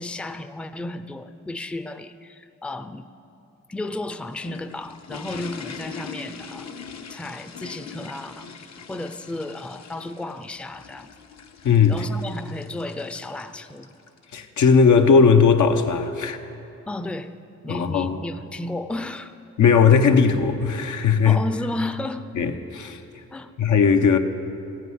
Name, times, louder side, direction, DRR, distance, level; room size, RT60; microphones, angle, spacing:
voice 1, 0.0-3.1 3.7-6.7 7.1-11.1 11.9-14.0 16.9-17.4 17.6-19.3 21.3-22.3 23.3-23.5, left 2 dB, 5° left, 11 dB, 0.5 m, -33 dB
sound 1, 4.2-14.3, left 5 dB, 65° left, 1.0 m, -41 dB
voice 2, 11.6-12.0 14.3-16.4 17.7-18.2 19.6-21.4 22.4-23.0 23.6-24.2, left 6 dB, 85° left, 6 dB, 1.0 m, -17 dB
15.0 x 9.3 x 9.5 m, 2.7 s
cardioid pair, 105°, 29 cm